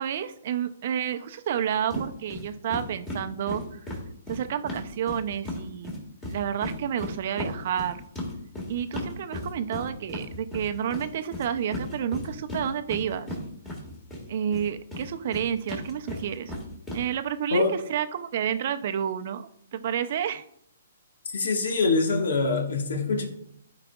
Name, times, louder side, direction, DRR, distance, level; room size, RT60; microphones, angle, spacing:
voice 1, 0.0-4.0 4.3-6.0 6.3-8.0 8.7-13.3 14.3-16.5 16.9-20.4, right 9 dB, 50° right, 10 dB, 0.5 m, -30 dB
sound 1, 1.9-2.0 2.3-2.4 2.7-5.6 5.8-14.2 14.5-17.0, left 1 dB, 15° left, 1.9 m, -35 dB
voice 2, 21.3-23.3, left 3 dB, 70° left, 3 dB, 1.4 m, -24 dB
11.5 x 4.9 x 2.4 m, 0.71 s
hypercardioid pair, 150°, 0 cm